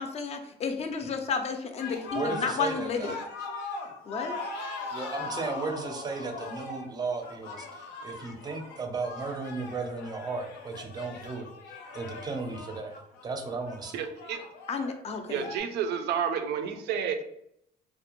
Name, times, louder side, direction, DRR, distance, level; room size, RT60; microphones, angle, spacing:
voice 1, 0.0-3.2 4.1-4.3 14.7-15.5, left 5 dB, 40° left, 6 dB, 0.4 m, -32 dB
sound 1, 1.8-15.6, left 3 dB, 85° left, 0.5 m, -40 dB
voice 2, 2.1-3.2 4.9-14.0, right 4 dB, 25° right, 4 dB, 0.5 m, -35 dB
voice 3, 13.9-14.4 15.3-17.2, right 7 dB, 75° right, 7 dB, 0.4 m, -30 dB
2.4 x 2.1 x 2.9 m, 0.71 s
cardioid pair, 110°, 17 cm